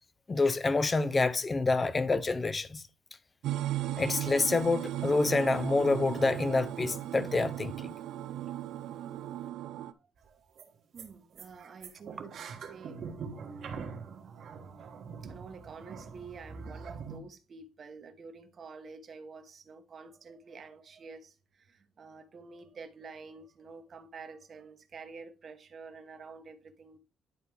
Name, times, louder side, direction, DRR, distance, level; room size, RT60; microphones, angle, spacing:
voice 1, 0.3-2.8 4.0-7.7, left 3 dB, 20° left, 0.6 m, -27 dB
sound 1, 3.4-9.9, right 13 dB, 85° right, 0.4 m, -36 dB
sound 2, 10.2-10.3 10.6-10.7 11.0-11.1 11.4-17.2, right 5 dB, 55° right, 1.3 m, -43 dB
voice 2, 10.9-12.4 12.7-27.0, right 4 dB, 40° right, 1.0 m, -49 dB
10.5 x 4.3 x 3.4 m
cardioid pair, 150°, 0 cm